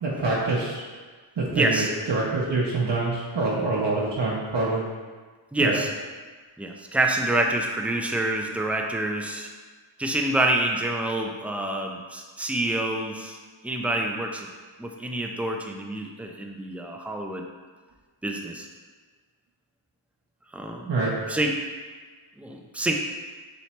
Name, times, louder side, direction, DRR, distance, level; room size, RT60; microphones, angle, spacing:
voice 1, 0.0-0.8 1.4-4.8 5.6-5.8 20.9-21.1, right 3 dB, 60° right, -5 dB, 0.8 m, -25 dB
voice 2, 1.5-1.9 5.5-5.9 6.6-9.5 10.0-13.4 13.6-14.5 14.8-17.4 18.2-18.7 20.5-20.9 21.3-21.6 22.4-22.9, right 1 dB, 5° right, 2 dB, 0.4 m, -27 dB
3.2 x 3.0 x 4.3 m, 1.4 s
wide cardioid pair, 60°, 47 cm